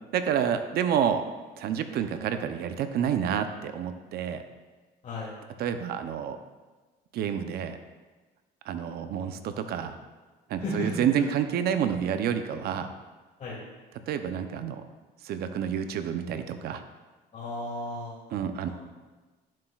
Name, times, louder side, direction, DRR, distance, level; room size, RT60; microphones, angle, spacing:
voice 1, 0.1-1.2 1.6-4.4 5.6-6.4 7.1-7.8 8.7-10.0 10.5-12.9 14.1-14.8 15.2-16.8 18.3-18.7, right 8 dB, 65° right, 8 dB, 0.6 m, -29 dB
voice 2, 5.0-5.3 10.6-11.0 13.4-13.6 17.3-18.1, left 2 dB, 45° left, -7 dB, 2.4 m, -34 dB
11.0 x 7.4 x 2.4 m, 1.3 s
cardioid pair, 110°, 17 cm